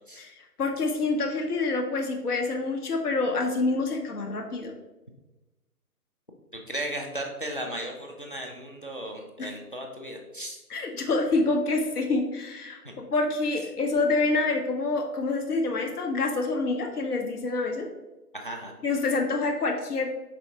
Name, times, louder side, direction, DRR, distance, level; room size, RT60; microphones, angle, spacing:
voice 1, 0.2-4.7 9.4-9.5 10.7-17.9 18.8-20.1, left 3 dB, 70° left, 3 dB, 0.9 m, -27 dB
voice 2, 6.5-10.6 12.8-13.0 18.3-18.7, right 1 dB, 35° left, 1 dB, 0.4 m, -36 dB
5.2 x 3.5 x 2.7 m, 1.1 s
hypercardioid pair, 160°, 47 cm